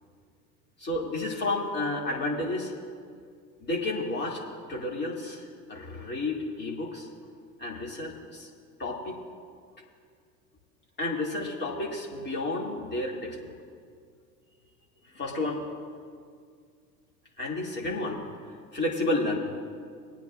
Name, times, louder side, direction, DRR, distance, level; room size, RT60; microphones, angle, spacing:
voice 1, 0.8-2.7 3.6-4.4 4.7-7.1 7.6-8.5 8.8-9.2 11.0-13.6 15.0-15.7 17.4-18.2 18.7-19.4, left 2 dB, 20° left, -3 dB, 2.6 m, -31 dB
22.5 x 9.1 x 2.5 m, 2.1 s
figure-of-eight pair, 75°, 47 cm